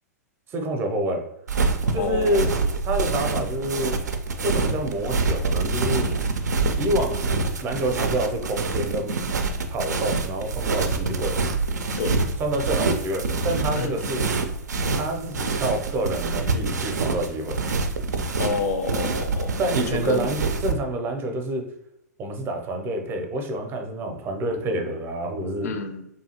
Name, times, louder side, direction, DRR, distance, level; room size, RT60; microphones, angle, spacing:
voice 1, 0.5-1.3 1.9-2.5 2.8-4.0 4.4-6.1 6.8-7.3 7.6-9.1 9.7-11.4 12.4-14.3 14.9-17.6 19.6-21.7 22.2-25.7, right 1 dB, 25° right, 4 dB, 0.5 m, -27 dB
sound 1, 1.5-20.7, right 3 dB, 80° right, 0.4 m, -26 dB
voice 2, 1.8-2.5 12.0-12.2 13.8-13.9 18.4-19.6 19.9-20.3 25.6-26.1, left 4 dB, 60° left, 8 dB, 0.4 m, -29 dB
2.6 x 2.3 x 2.8 m, 0.79 s
figure-of-eight pair, 105°, 9 cm